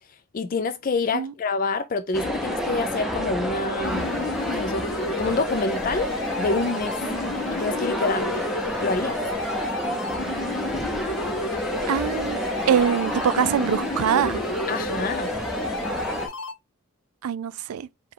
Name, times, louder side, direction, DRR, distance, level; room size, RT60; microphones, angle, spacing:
voice 1, 0.3-6.1 6.4-7.0 7.5-8.4 8.8-9.2 14.7-15.3, left 3 dB, 40° left, 0.3 m, -27 dB
sound 1, 2.1-16.3, equal, ahead, 0.6 m, -29 dB
sound 2, 3.8-16.5, left 2 dB, 60° left, 0.8 m, -32 dB
voice 2, 11.9-12.4 12.7-14.4 17.2-17.9, right 8 dB, 85° right, 0.4 m, -23 dB
4.7 x 2.3 x 3.7 m
head